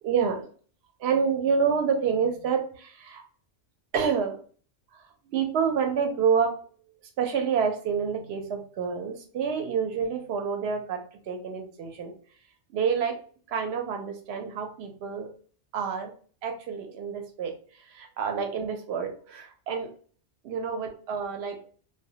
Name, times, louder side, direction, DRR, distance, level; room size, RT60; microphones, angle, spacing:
voice 1, 0.0-0.5 1.0-3.2 3.9-4.4 4.9-6.5 7.2-11.0 11.3-12.1 12.7-13.2 13.5-15.3 15.7-16.1 16.4-19.9 20.4-21.6, right 6 dB, 65° right, 4 dB, 0.7 m, -28 dB
2.1 x 2.1 x 2.7 m, 0.43 s
omnidirectional pair, 1.3 m